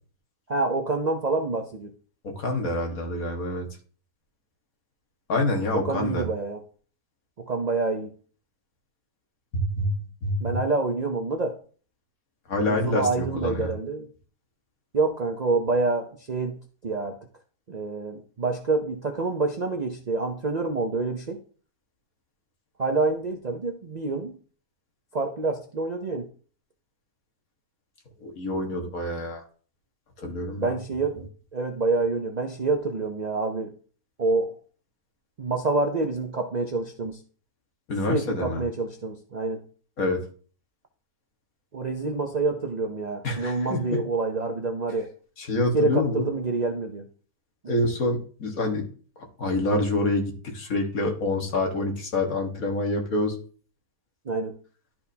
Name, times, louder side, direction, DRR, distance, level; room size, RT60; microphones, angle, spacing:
voice 1, 0.5-1.9 5.8-6.6 7.4-8.1 10.4-11.6 12.6-14.1 14.9-16.6 16.8-17.2 17.7-21.4 22.8-24.4 25.1-26.3 30.6-33.7 34.2-34.6 35.4-37.2 38.1-39.6 41.7-45.1 45.7-47.0 47.6-47.8 54.3-54.5, right 3 dB, 45° right, 3 dB, 0.5 m, -27 dB
voice 2, 2.2-3.7 5.3-6.3 9.8-9.9 10.2-10.5 12.5-13.7 28.2-29.4 30.2-30.7 37.9-38.6 40.0-40.2 43.2-44.0 45.4-46.3 47.7-48.9 49.4-53.4, left 2 dB, 70° left, 2 dB, 1.9 m, -26 dB
12.0 x 4.4 x 2.8 m, 0.41 s
omnidirectional pair, 1.6 m